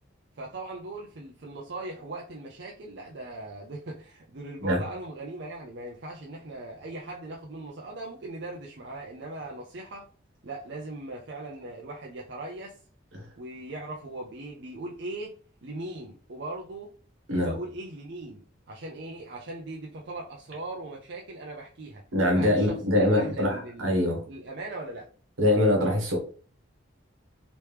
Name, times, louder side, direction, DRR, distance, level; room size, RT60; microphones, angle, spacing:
voice 1, 0.4-10.1 10.4-12.8 13.4-15.3 15.6-16.9 17.4-22.0 22.3-25.1, right 2 dB, 55° right, 0.5 m, -39 dB
voice 2, 22.1-24.3 25.4-26.2, left 1 dB, 80° right, 1.2 m, -24 dB
3.0 x 3.0 x 3.3 m
head